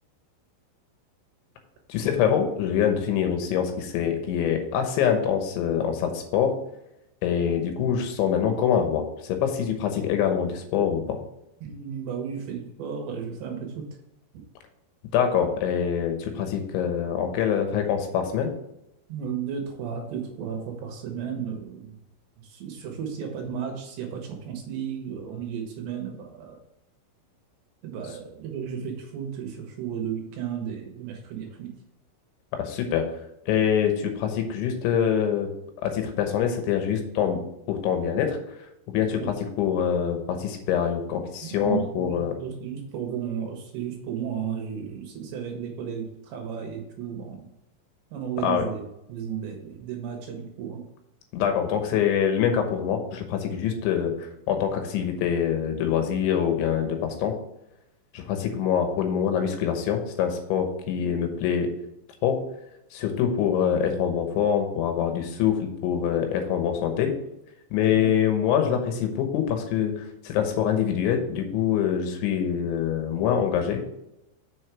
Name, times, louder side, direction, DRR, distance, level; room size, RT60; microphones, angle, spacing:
voice 1, 1.9-6.6 7.2-11.2 15.1-18.5 32.5-33.0 33.5-35.5 35.8-37.4 37.7-38.4 38.9-42.3 48.4-48.6 51.3-57.3 58.1-61.7 62.2-62.4 62.9-67.1 67.7-73.8, left 8 dB, 75° left, 5 dB, 3.2 m, -25 dB
voice 2, 11.6-14.0 14.3-14.4 19.1-22.0 22.4-26.6 27.8-31.7 39.2-39.3 41.4-47.5 48.1-50.8 67.9-68.1, right 8 dB, 70° right, 2 dB, 3.2 m, -34 dB
6.9 x 6.3 x 4.7 m, 0.86 s
omnidirectional pair, 5.7 m